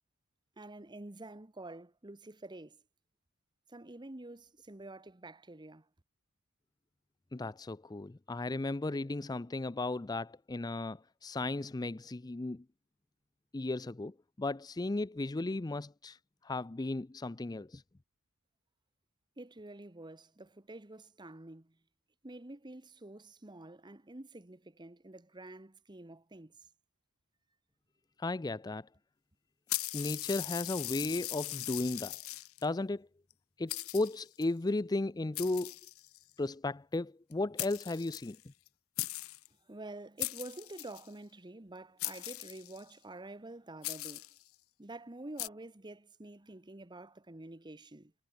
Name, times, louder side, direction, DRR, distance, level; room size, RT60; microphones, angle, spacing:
voice 1, 0.6-2.8 3.7-5.9 19.4-21.8 22.2-26.7 39.7-44.3 44.8-48.1, right 2 dB, 20° right, 1.0 m, -48 dB
voice 2, 7.3-12.6 13.5-16.2 16.4-17.8 28.2-28.9 29.9-32.2 32.6-33.1 33.6-35.7 36.4-38.4, left 2 dB, 20° left, 0.4 m, -35 dB
sound 1, 29.7-32.6 33.3-33.4 33.7-34.4 35.3-36.3 37.3-37.4 37.6-38.7 39.0-39.5 40.2-41.1 42.0-42.9 43.8-44.4 45.4-45.5, left 18 dB, 70° left, 0.9 m, -39 dB
head